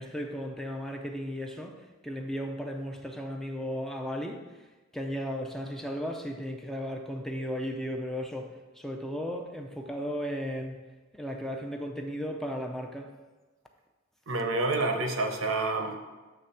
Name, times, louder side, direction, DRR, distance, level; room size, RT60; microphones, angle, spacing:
voice 1, 0.0-1.8 2.0-4.4 4.9-10.8 11.1-13.1, equal, ahead, 2 dB, 0.5 m, -35 dB
voice 2, 14.3-16.0, right 2 dB, 85° right, 4 dB, 0.9 m, -28 dB
7.8 x 3.4 x 5.6 m, 1.2 s
head